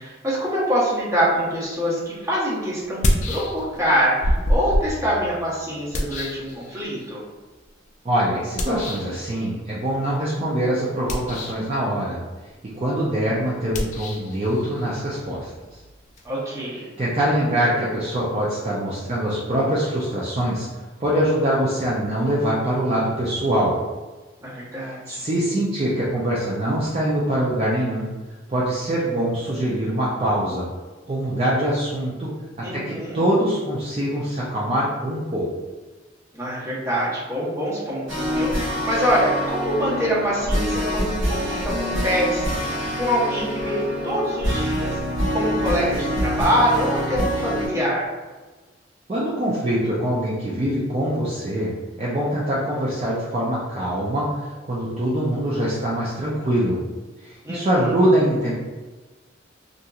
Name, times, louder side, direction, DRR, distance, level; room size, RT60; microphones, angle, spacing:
voice 1, 0.0-7.2 16.2-16.9 24.4-25.3 32.6-33.2 36.3-45.0 45.3-48.1 57.4-58.0, equal, 15° right, -7 dB, 0.8 m, -25 dB
sound 1, 1.9-2.0 2.8-3.9 4.2-7.1 8.6-9.2 10.9-11.7 13.7-16.3, left 1 dB, 40° left, 0.3 m, -27 dB
voice 2, 8.0-12.2 12.8-15.5 17.0-20.7 21.0-23.8 24.9-28.1 28.5-30.7 31.1-32.3 32.7-35.5 49.1-51.7 52.0-56.8 57.2-58.5, right 1 dB, 30° right, -7 dB, 0.4 m, -23 dB
sound 2, 38.1-47.7, equal, 80° right, 0.9 m, -25 dB
2.8 x 2.6 x 2.3 m, 1.3 s
head